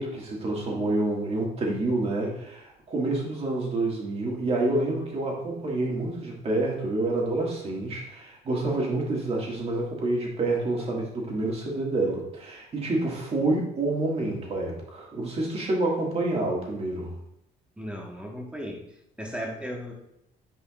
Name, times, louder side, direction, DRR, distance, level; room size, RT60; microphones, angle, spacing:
voice 1, 0.0-17.1, right 2 dB, 35° right, -2 dB, 2.2 m, -28 dB
voice 2, 17.8-18.8 19.2-19.9, equal, 5° right, 0 dB, 1.6 m, -36 dB
9.3 x 5.0 x 2.5 m, 0.80 s
cardioid pair, 110°, 17 cm